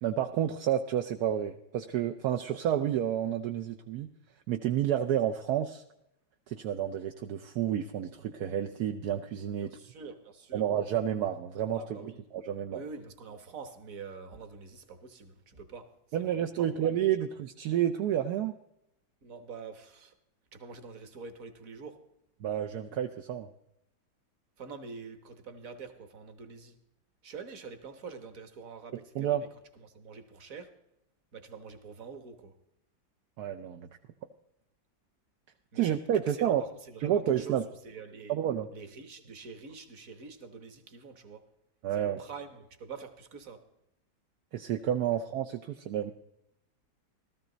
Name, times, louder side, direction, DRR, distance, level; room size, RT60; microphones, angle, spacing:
voice 1, 0.0-4.1 4.5-5.8 6.5-9.7 10.5-12.0 12.5-12.8 16.1-18.6 22.4-23.5 29.2-29.4 33.4-33.9 35.7-36.6 37.0-37.6 38.3-38.7 41.8-42.2 44.5-46.1, right 10 dB, 65° right, 1.1 m, -30 dB
voice 2, 9.6-10.7 11.7-12.2 12.7-17.0 19.2-20.2 20.5-22.1 24.6-26.8 27.2-29.5 29.7-30.8 31.3-32.6 35.7-35.9 36.3-38.4 38.7-41.5 41.9-43.7, right 5 dB, 50° right, 1.6 m, -46 dB
15.5 x 13.5 x 3.9 m
omnidirectional pair, 2.1 m